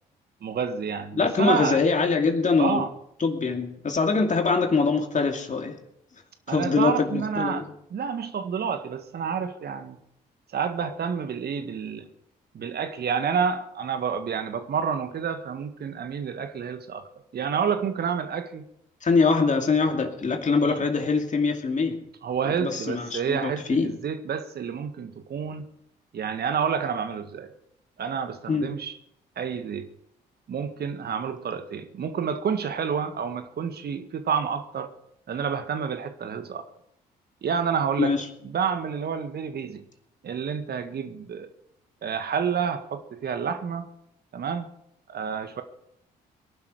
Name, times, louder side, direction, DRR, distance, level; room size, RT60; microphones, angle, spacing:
voice 1, 0.4-1.8 2.6-2.9 6.5-10.0 10.5-12.1 12.5-18.6 20.6-20.8 22.2-25.6 26.1-27.5 28.0-28.9 29.4-29.9 30.5-34.9 35.3-36.7 37.4-38.1 38.4-39.8 40.2-41.5 42.0-43.9 44.3-44.7 45.1-45.6, right 6 dB, 50° right, 1.8 m, -29 dB
voice 2, 1.1-2.8 3.2-5.8 6.5-7.7 19.0-22.0 22.6-23.9 28.5-28.8 38.0-38.3, left 4 dB, 35° left, 2.6 m, -23 dB
22.5 x 11.5 x 5.0 m
figure-of-eight pair, 45°, 21 cm